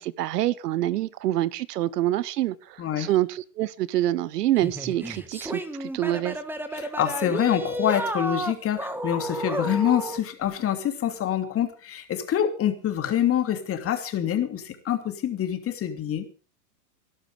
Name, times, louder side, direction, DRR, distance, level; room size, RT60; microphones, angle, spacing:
voice 1, 0.0-6.4, right 14 dB, 75° right, 21 dB, 1.1 m, -26 dB
voice 2, 2.8-3.1 6.7-16.3, left 10 dB, 30° left, 7 dB, 2.9 m, -26 dB
sound 1, 4.6-10.2, right 1 dB, 5° right, 1.6 m, -32 dB
18.0 x 12.0 x 5.0 m, 0.37 s
hypercardioid pair, 125°, 48 cm